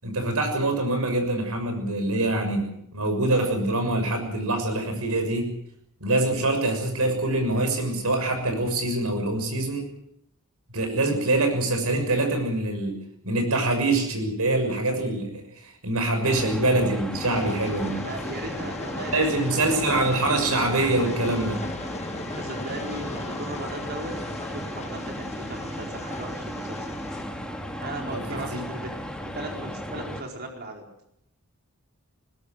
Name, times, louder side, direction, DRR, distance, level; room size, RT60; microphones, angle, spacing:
voice 1, 0.0-5.5 6.0-9.9 10.7-18.0 19.1-21.6 28.1-28.6, right 2 dB, 75° right, 5 dB, 6.7 m, -25 dB
sound 1, 16.2-30.2, equal, 5° left, 2.9 m, -35 dB
Train, 17.2-27.2, left 2 dB, 30° left, 1.9 m, -38 dB
voice 2, 17.9-19.9 22.2-24.1 24.4-26.9 27.8-28.9 29.2-30.8, right 2 dB, 50° right, 1 dB, 4.6 m, -37 dB
21.0 x 20.5 x 8.0 m, 0.75 s
head